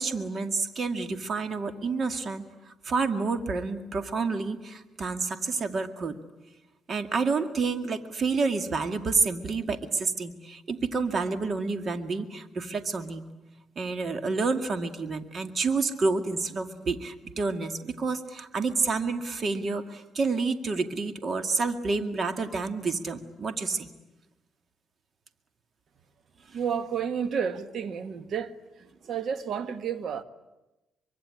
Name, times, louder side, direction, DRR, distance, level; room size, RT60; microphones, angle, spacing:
voice 1, 0.0-2.4 2.8-6.2 6.9-13.2 13.8-23.9, right 4 dB, 45° right, 2.1 m, -29 dB
voice 2, 26.5-28.5 29.1-30.2, right 7 dB, 60° right, 1.5 m, -30 dB
24.0 x 24.0 x 9.9 m
cardioid pair, 90°, 0 cm